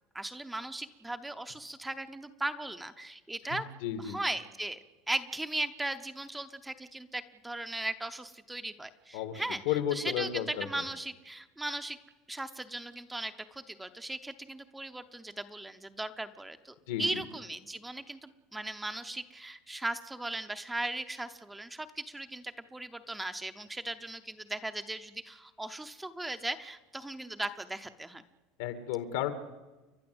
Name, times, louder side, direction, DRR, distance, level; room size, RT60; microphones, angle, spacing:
voice 1, 0.1-3.6 4.0-4.8 5.1-12.0 12.3-28.2, right 2 dB, 5° right, 9 dB, 0.7 m, -38 dB
voice 2, 3.5-4.2 9.1-10.8 16.9-17.0 28.6-29.3, left 11 dB, 75° left, 10 dB, 2.3 m, -33 dB
30.0 x 11.5 x 7.9 m, 1.2 s
cardioid pair, 165°, 0 cm